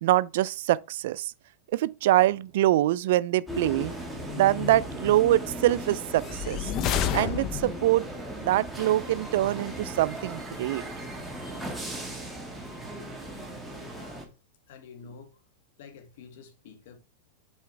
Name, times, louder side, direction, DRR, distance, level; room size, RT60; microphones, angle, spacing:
voice 1, 0.0-1.3 1.7-3.9 4.3-6.7 7.1-8.1 8.4-10.8, right 15 dB, 65° right, 0.3 m, -24 dB
sound 1, 3.5-14.3, equal, ahead, 1.4 m, -37 dB
sound 2, 6.2-8.0, left 9 dB, 35° left, 0.6 m, -29 dB
voice 2, 13.8-14.2 14.7-15.4 15.8-17.0, left 6 dB, 65° left, 1.8 m, -49 dB
7.1 x 4.8 x 3.2 m
supercardioid pair, 150°, 0 cm